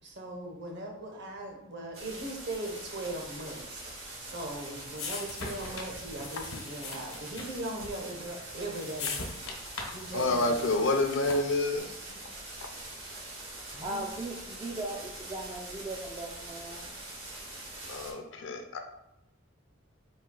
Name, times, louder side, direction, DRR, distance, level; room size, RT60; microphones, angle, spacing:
voice 1, 0.0-3.8 4.2-9.2 9.9-10.9 11.7-12.2 13.7-14.0, right 1 dB, 55° right, 1 dB, 0.9 m, -39 dB
sound 1, 1.9-18.1, right 2 dB, 75° right, 1.5 m, -44 dB
sound 2, 4.2-11.7, left 3 dB, 80° left, 1.0 m, -41 dB
voice 2, 10.1-11.9 17.9-18.8, left 2 dB, 60° left, 4 dB, 0.5 m, -28 dB
voice 3, 13.8-16.9, right 2 dB, 25° right, -1 dB, 0.3 m, -38 dB
4.3 x 2.7 x 3.7 m, 0.88 s
head